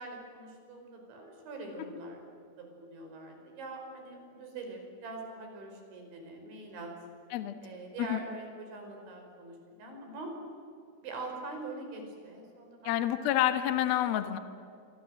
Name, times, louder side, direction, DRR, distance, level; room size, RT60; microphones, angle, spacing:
voice 1, 0.0-2.2 2.6-6.9 7.6-10.3 11.0-13.3, right 2 dB, 70° right, 3 dB, 7.7 m, -43 dB
voice 2, 12.8-14.4, left 12 dB, 65° left, 9 dB, 2.8 m, -28 dB
28.0 x 24.5 x 7.9 m, 2.7 s
omnidirectional pair, 5.5 m